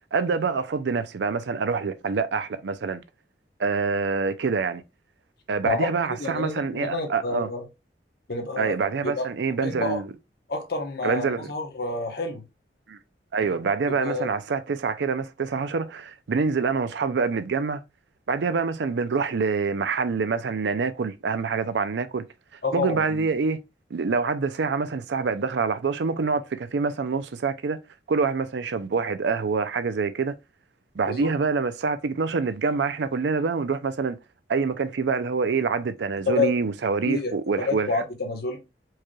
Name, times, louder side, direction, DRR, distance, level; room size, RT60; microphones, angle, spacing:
voice 1, 0.1-3.0 3.6-4.8 5.5-7.5 8.6-10.1 11.0-11.5 12.9-13.0 13.3-17.8 18.3-22.2 22.7-23.6 23.9-27.8 28.1-30.3 30.9-34.2 34.5-38.0, right 4 dB, 75° right, 0.4 m, -26 dB
voice 2, 6.2-7.7 8.3-8.7 9.0-9.3 9.6-10.0 10.5-12.4 13.4-13.6 13.9-14.3 22.6-23.3 31.0-31.3 36.3-36.5 37.1-37.3 37.6-38.6, left 3 dB, 60° left, 1.0 m, -28 dB
4.6 x 3.1 x 2.3 m
head